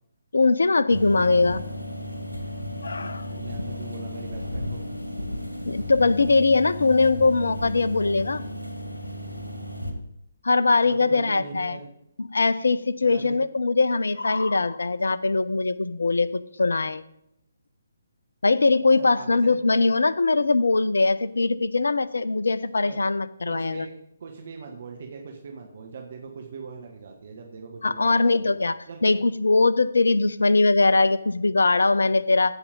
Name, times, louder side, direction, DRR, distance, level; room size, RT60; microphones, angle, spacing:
voice 1, 0.3-1.6 2.8-3.3 5.7-8.4 10.4-11.8 12.2-17.0 18.4-23.9 27.8-32.5, left 3 dB, 65° left, 16 dB, 0.6 m, -21 dB
sound 1, 0.9-9.9, left 1 dB, 80° left, 1.9 m, -34 dB
voice 2, 3.3-4.8 10.8-11.9 13.0-13.4 19.0-19.5 22.7-23.0 23.4-23.9 24.2-28.5 28.9-29.2, right 5 dB, 50° right, 2 dB, 1.5 m, -41 dB
15.0 x 5.5 x 5.3 m, 0.78 s
figure-of-eight pair, 140°, 0 cm